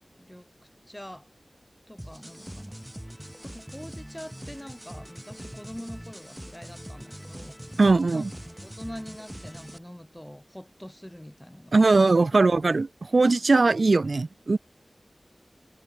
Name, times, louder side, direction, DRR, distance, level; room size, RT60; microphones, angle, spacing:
voice 1, 0.2-1.3 1.9-2.8 3.2-7.8 8.1-12.2, equal, 10° left, 4.9 m, -44 dB
sound 1, 2.0-9.8, equal, 10° right, 4.8 m, -42 dB
voice 2, 7.8-8.3 11.7-12.9 13.1-14.6, right 3 dB, 75° right, 0.6 m, -20 dB
wide cardioid pair, 45°, 0 cm